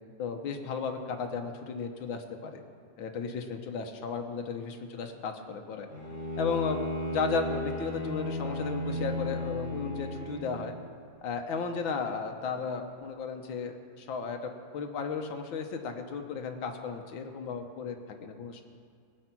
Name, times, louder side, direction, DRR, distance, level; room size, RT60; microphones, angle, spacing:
voice 1, 0.2-2.6 3.0-5.9 6.4-6.8 7.1-10.7 11.2-18.6, left 5 dB, 85° left, 4 dB, 1.8 m, -34 dB
Bowed string instrument, 5.9-10.7, equal, 40° left, 4.5 m, -34 dB
18.0 x 7.9 x 5.9 m, 2.2 s
omnidirectional pair, 2.1 m